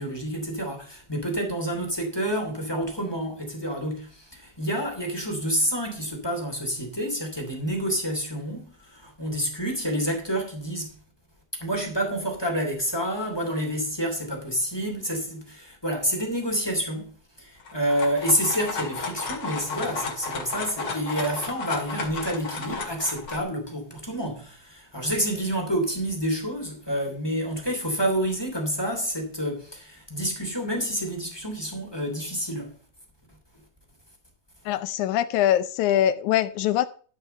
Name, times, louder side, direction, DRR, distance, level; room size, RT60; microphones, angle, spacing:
voice 1, 0.0-10.9 11.6-17.1 17.4-32.7, equal, 5° left, 2.5 m, -28 dB
sound 1, 17.6-23.4, left 4 dB, 40° left, 2.7 m, -33 dB
voice 2, 34.6-36.9, left 11 dB, 80° left, 1.7 m, -23 dB
12.5 x 5.7 x 5.5 m
omnidirectional pair, 4.2 m